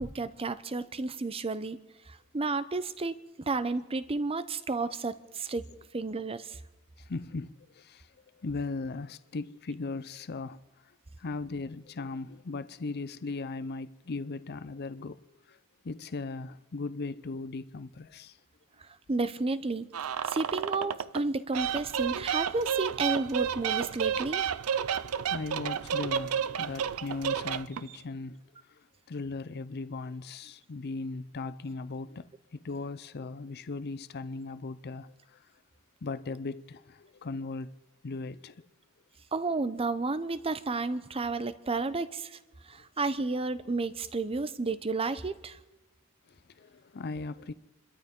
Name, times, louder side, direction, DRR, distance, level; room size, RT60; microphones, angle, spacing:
voice 1, 0.0-1.8 2.1-5.7 5.9-6.6 19.1-19.9 20.2-24.4 39.3-42.4 42.6-45.6, right 3 dB, 25° right, 0.6 m, -32 dB
voice 2, 7.0-10.9 11.2-15.2 15.5-15.6 15.8-18.4 24.9-28.4 28.7-35.5 36.0-37.7 38.0-38.7 46.3-47.5, left 3 dB, 45° left, 0.5 m, -38 dB
sound 1, 19.9-21.2 21.5-28.0, right 8 dB, 70° right, 0.5 m, -31 dB
28.5 x 13.0 x 3.7 m
head